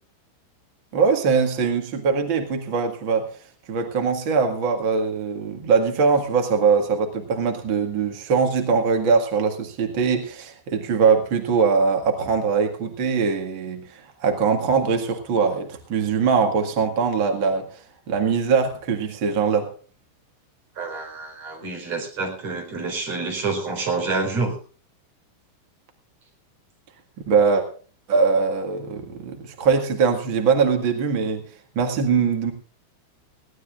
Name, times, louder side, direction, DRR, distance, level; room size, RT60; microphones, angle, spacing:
voice 1, 0.9-3.3 3.7-19.7 27.3-27.7 28.1-31.4 31.7-32.5, right 5 dB, 60° right, 4 dB, 1.3 m, -22 dB
voice 2, 20.8-24.5, right 3 dB, 35° right, 2 dB, 5.2 m, -27 dB
20.5 x 17.5 x 2.5 m, 0.40 s
omnidirectional pair, 5.3 m